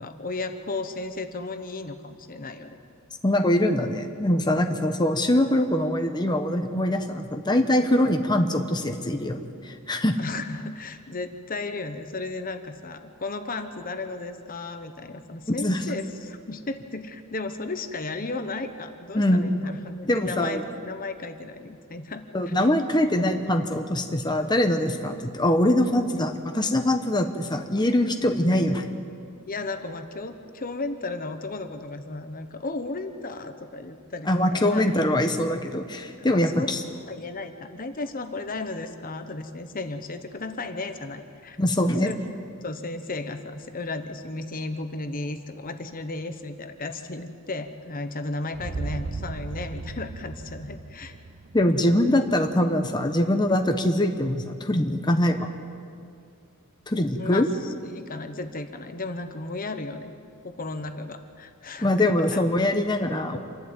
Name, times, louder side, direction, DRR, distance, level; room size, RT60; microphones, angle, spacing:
voice 1, 0.0-2.8 10.2-22.5 29.4-34.9 36.2-36.7 37.0-41.6 41.8-42.2 42.6-51.2 57.2-60.1 60.4-62.4, left 3 dB, 40° left, 8 dB, 1.1 m, -34 dB
voice 2, 3.2-10.2 15.6-15.8 19.1-19.5 20.1-20.6 22.3-28.9 34.3-36.8 41.6-42.1 51.5-55.5 56.9-57.5 61.8-63.4, left 1 dB, 20° left, 5 dB, 1.0 m, -23 dB
sound 1, 48.5-52.6, right 3 dB, 45° right, 0.7 m, -36 dB
28.0 x 12.0 x 8.9 m, 2.4 s
head